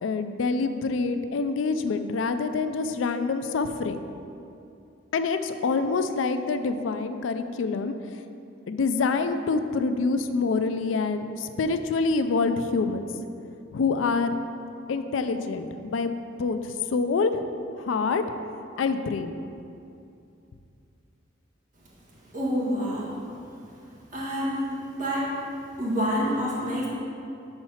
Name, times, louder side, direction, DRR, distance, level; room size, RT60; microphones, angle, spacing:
voice 1, 0.0-4.0 5.1-7.9 8.7-13.0 13.7-14.3 14.9-17.4 17.8-18.2 18.8-19.3, left 4 dB, 85° left, 9 dB, 0.4 m, -26 dB
voice 2, 22.3-23.2 24.1-24.7 25.0-25.3 25.8-26.9, equal, 45° right, -6 dB, 1.6 m, -27 dB
5.6 x 4.4 x 5.6 m, 2.6 s
head